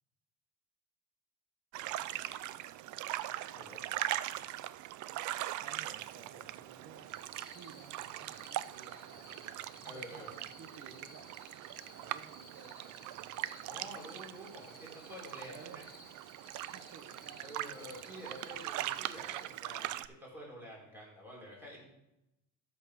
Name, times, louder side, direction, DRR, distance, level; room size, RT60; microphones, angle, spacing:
sound 1, 1.7-20.1, right 14 dB, 60° right, 0.5 m, -41 dB
voice 1, 5.6-11.3 11.9-13.4 15.5-15.8 16.5-17.6, right 5 dB, 45° right, 2 dB, 1.1 m, -55 dB
sound 2, 7.1-19.4, left 1 dB, 10° left, 3.5 m, -57 dB
voice 2, 9.8-10.3 13.6-15.8 17.4-21.9, equal, 5° right, -4 dB, 3.6 m, -49 dB
12.5 x 6.0 x 4.9 m, 0.87 s
cardioid pair, 155°, 34 cm